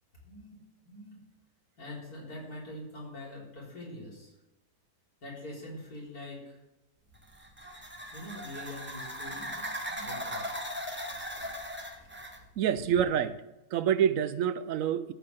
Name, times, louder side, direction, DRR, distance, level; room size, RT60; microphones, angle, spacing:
voice 1, 0.2-0.6 0.8-1.2 1.8-4.3 5.2-6.6 8.1-9.6 9.9-10.5 11.1-11.2 12.0-12.1, left 1 dB, 80° left, -5 dB, 4.1 m, -44 dB
sound 1, 7.1-12.4, equal, 10° right, 0.8 m, -39 dB
voice 2, 12.6-13.4 13.7-15.1, right 9 dB, 70° right, 13 dB, 1.0 m, -27 dB
14.5 x 7.6 x 3.3 m, 0.98 s
omnidirectional pair, 1.6 m